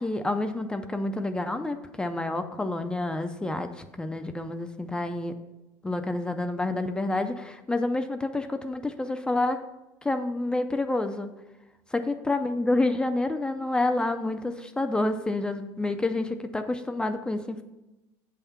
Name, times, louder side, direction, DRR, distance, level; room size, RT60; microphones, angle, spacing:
voice 1, 0.0-5.3 5.8-9.6 10.0-11.3 11.9-17.6, left 2 dB, 10° left, 7 dB, 0.4 m, -28 dB
7.8 x 3.6 x 5.7 m, 1.0 s
supercardioid pair, 125°, 9 cm